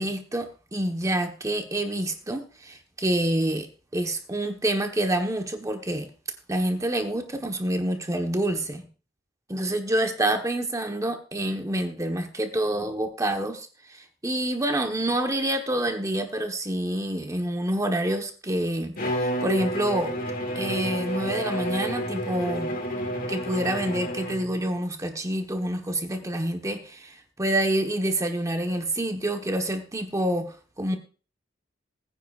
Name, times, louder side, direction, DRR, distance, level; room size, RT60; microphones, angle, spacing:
voice 1, 0.0-3.7 3.9-6.1 6.5-8.9 9.5-20.1 20.5-22.7 23.3-31.0, right 1 dB, 15° right, 5 dB, 1.2 m, -27 dB
Bowed string instrument, 19.0-24.6, equal, 50° left, 1.9 m, -30 dB
20.5 x 9.7 x 2.5 m, 0.36 s
head